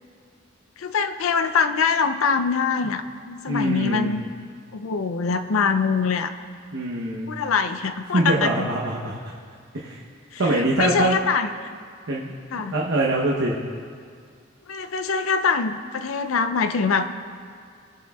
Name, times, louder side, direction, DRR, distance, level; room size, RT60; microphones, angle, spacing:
voice 1, 0.8-4.2 4.7-6.3 7.3-8.7 10.3-11.5 12.5-12.7 14.7-17.1, left 5 dB, 80° left, 8 dB, 0.5 m, -24 dB
voice 2, 3.5-4.1 6.7-7.3 8.1-9.2 9.7-10.0 10.4-11.2 12.1-13.6, right 1 dB, 65° right, -4 dB, 0.9 m, -24 dB
17.5 x 7.8 x 2.3 m, 2.2 s
head